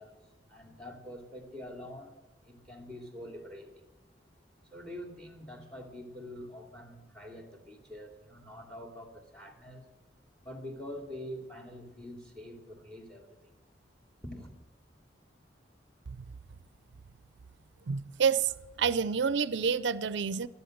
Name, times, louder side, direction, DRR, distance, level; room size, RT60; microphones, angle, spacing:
voice 1, 0.0-2.1 2.4-3.8 4.6-9.8 10.4-13.5 14.2-14.6, left 1 dB, 5° left, 2.6 m, -45 dB
voice 2, 17.9-18.5 18.8-20.5, right 6 dB, 70° right, 0.5 m, -28 dB
15.5 x 13.0 x 6.5 m
head